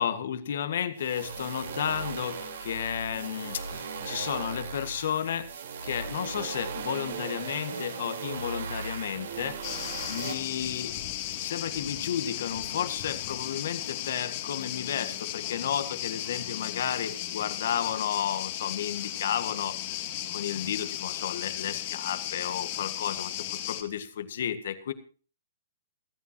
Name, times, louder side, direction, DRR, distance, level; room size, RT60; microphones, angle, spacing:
voice 1, 0.0-5.5 5.8-9.6 10.1-11.0 11.4-24.9, left 9 dB, 65° left, 10 dB, 1.7 m, -32 dB
sound 1, 0.9-10.3, right 5 dB, 75° right, 4.0 m, -37 dB
sound 2, 9.6-23.8, left 13 dB, 45° left, 2.3 m, -35 dB
28.0 x 9.5 x 2.9 m, 0.39 s
hypercardioid pair, 150°, 0 cm